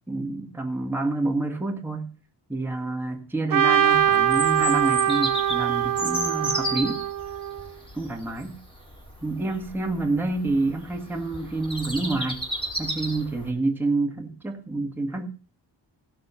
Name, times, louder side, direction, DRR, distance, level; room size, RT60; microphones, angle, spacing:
voice 1, 0.1-2.1 2.5-7.0 8.0-8.6 9.2-12.5 12.8-15.3, right 2 dB, 5° right, 2 dB, 1.7 m, -28 dB
Trumpet, 3.5-7.7, right 10 dB, 45° right, 1.3 m, -23 dB
Bird vocalization bird call bird song, 3.9-13.5, equal, 10° left, 4.6 m, -34 dB
16.5 x 6.6 x 5.6 m, 0.37 s
cardioid pair, 85°, 46 cm